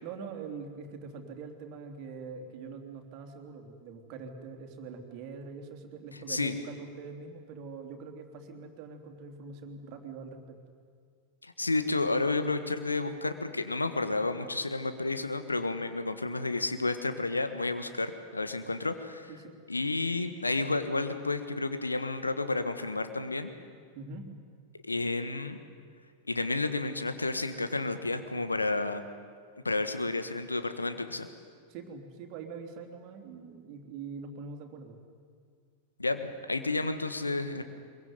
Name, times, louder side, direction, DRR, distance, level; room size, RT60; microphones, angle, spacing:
voice 1, 0.0-10.6 19.3-19.6 23.9-24.3 31.7-35.0, right 4 dB, 45° right, 5 dB, 3.2 m, -43 dB
voice 2, 11.4-19.3 19.7-23.5 24.9-25.6 26.3-29.0 29.6-31.3 36.0-37.6, left 3 dB, 80° left, 9 dB, 1.6 m, -31 dB
23.5 x 22.5 x 9.5 m, 2.1 s
figure-of-eight pair, 90°, 0 cm